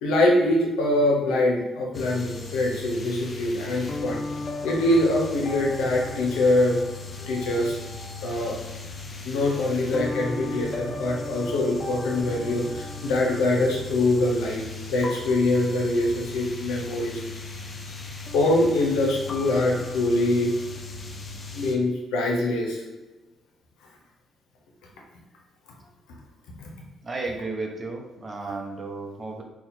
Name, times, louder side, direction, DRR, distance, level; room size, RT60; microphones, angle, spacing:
voice 1, 0.0-4.2 4.6-6.8 7.3-7.8 8.2-8.6 9.2-14.6 14.9-17.2 18.3-20.5 21.5-22.8 26.6-26.7, left 1 dB, 90° left, -1 dB, 0.7 m, -23 dB
sound 1, 1.9-21.7, left 3 dB, 40° left, 0.5 m, -36 dB
voice 2, 27.0-29.4, right 3 dB, 35° right, 1 dB, 0.7 m, -33 dB
2.8 x 2.3 x 4.0 m, 1.1 s
supercardioid pair, 75°, 0 cm